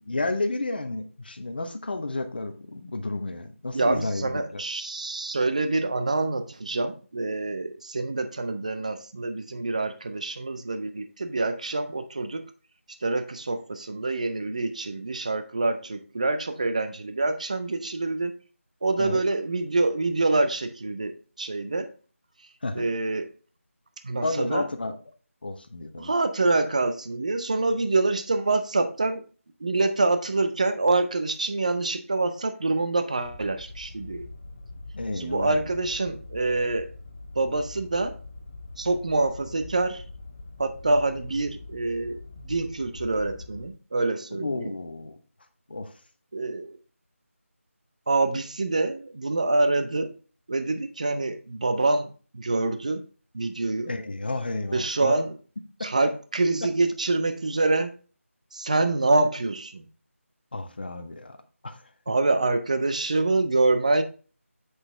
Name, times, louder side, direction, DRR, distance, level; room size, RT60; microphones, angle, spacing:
voice 1, 0.1-4.6 19.0-19.2 22.6-22.8 24.2-25.0 25.4-26.1 34.9-35.7 44.3-45.2 45.7-45.9 53.9-55.2 60.5-61.4 61.6-61.8, left 2 dB, 40° left, 0.9 m, -31 dB
voice 2, 3.7-12.4 13.0-18.3 18.8-21.9 22.7-23.3 24.0-24.7 26.0-29.2 29.6-34.3 35.2-36.9 37.4-38.2 38.8-40.0 40.6-44.7 46.3-46.7 48.1-50.1 50.5-53.0 53.3-53.9 54.7-55.3 55.8-57.9 58.5-59.8 62.1-64.0, right 2 dB, 30° right, 0.6 m, -26 dB
sound 1, 33.2-43.7, left 2 dB, 10° left, 0.4 m, -43 dB
8.0 x 5.9 x 3.2 m
figure-of-eight pair, 165°, 8 cm